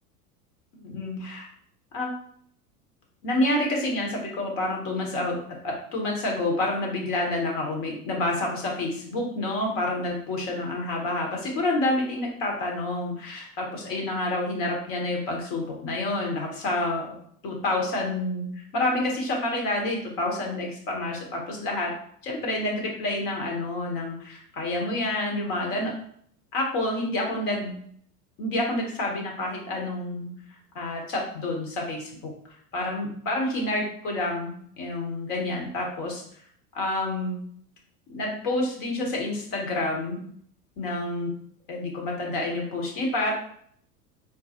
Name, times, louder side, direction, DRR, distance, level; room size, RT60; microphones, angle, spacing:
voice 1, 0.8-1.5 1.9-2.1 3.2-5.4 5.6-17.2 17.4-21.9 22.2-25.9 26.5-27.8 28.4-30.3 30.7-32.3 32.7-36.2 36.7-37.4 38.1-40.2 40.8-41.3 41.7-43.3, left 2 dB, 45° left, 0 dB, 1.2 m, -28 dB
3.8 x 2.2 x 2.9 m, 0.63 s
figure-of-eight pair, 85°, 46 cm